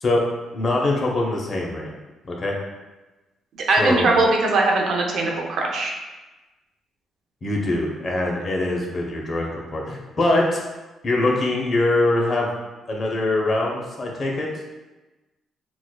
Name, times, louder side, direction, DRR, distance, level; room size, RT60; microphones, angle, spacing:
voice 1, 0.5-1.9 2.2-2.6 3.8-4.1 7.4-10.6 11.0-12.5 12.9-14.5, left 2 dB, 40° left, -1 dB, 0.7 m, -23 dB
voice 2, 3.7-5.9, right 2 dB, 70° right, 0 dB, 0.6 m, -20 dB
4.6 x 2.2 x 2.3 m, 1.1 s
cardioid pair, 90°, 0 cm